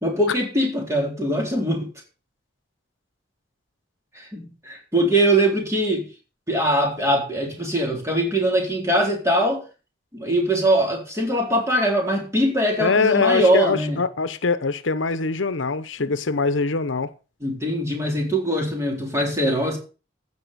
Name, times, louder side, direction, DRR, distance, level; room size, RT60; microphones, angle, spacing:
voice 1, 0.0-1.9 4.1-6.1 6.5-9.6 10.1-14.0 17.4-19.8, right 1 dB, 15° right, 3.9 m, -22 dB
voice 2, 12.8-17.1, left 4 dB, 80° left, 0.8 m, -23 dB
15.5 x 5.5 x 6.8 m
head